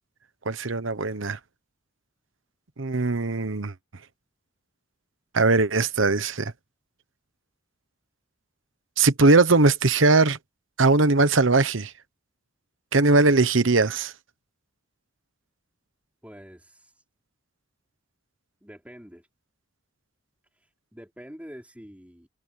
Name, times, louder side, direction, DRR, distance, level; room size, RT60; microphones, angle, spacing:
voice 1, 0.5-1.4 2.8-3.7 5.3-6.5 9.0-10.4 10.8-11.9 12.9-14.1, right 3 dB, 75° right, 1.1 m, -20 dB
voice 2, 16.2-17.0 18.6-19.3 20.5-22.3, equal, 5° right, 4.4 m, -46 dB
head